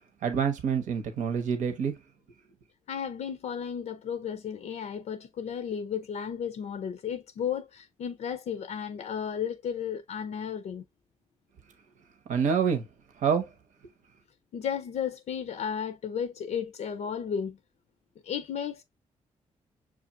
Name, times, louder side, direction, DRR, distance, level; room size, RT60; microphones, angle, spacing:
voice 1, 0.2-2.0 12.3-12.9 13.1-13.5, right 7 dB, 80° right, 0.9 m, -27 dB
voice 2, 2.9-10.8 14.5-17.6 18.2-18.8, left 7 dB, 65° left, 0.5 m, -34 dB
6.2 x 2.5 x 2.6 m
cardioid pair, 65°, 13 cm